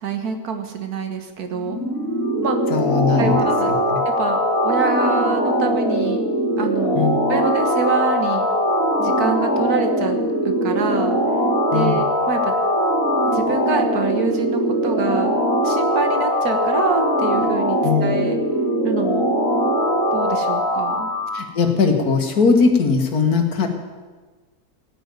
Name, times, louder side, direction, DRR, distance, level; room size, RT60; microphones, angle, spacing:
voice 1, 0.0-1.8 2.4-2.6 3.2-3.7 4.0-6.3 6.6-8.5 9.0-10.2 10.4-11.2 11.7-12.5 13.3-15.3 15.6-18.4 18.8-19.3 20.1-21.1, right 5 dB, 85° right, 6 dB, 1.8 m, -26 dB
sound 1, 1.5-21.4, equal, 60° left, 2.7 m, -21 dB
voice 2, 2.7-3.4 3.7-4.0 6.9-7.1 11.7-12.0 17.8-18.1 21.3-23.7, left 5 dB, 90° left, 4 dB, 2.1 m, -19 dB
17.5 x 6.2 x 9.3 m, 1.4 s
omnidirectional pair, 1.6 m